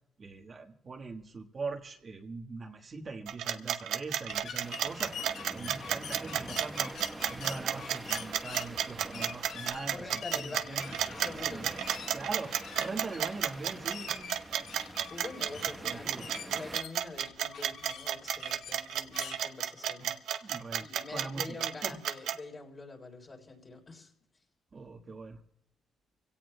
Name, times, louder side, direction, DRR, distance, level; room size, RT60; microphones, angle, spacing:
voice 1, 0.2-11.1 11.4-11.8 12.1-14.3 15.8-16.3 20.0-20.1 20.4-22.0 24.7-25.4, right 4 dB, 40° right, 1 dB, 1.5 m, -42 dB
sound 1, 3.3-22.4, right 10 dB, 80° right, 0.7 m, -32 dB
sound 2, 4.3-19.4, left 7 dB, 70° left, 1.0 m, -46 dB
sound 3, 4.6-16.8, right 2 dB, 15° right, 1.2 m, -46 dB
voice 2, 9.9-11.8 15.1-24.1, left 3 dB, 35° left, 1 dB, 3.7 m, -45 dB
25.5 x 17.0 x 2.2 m, 0.78 s
cardioid pair, 90°, 0 cm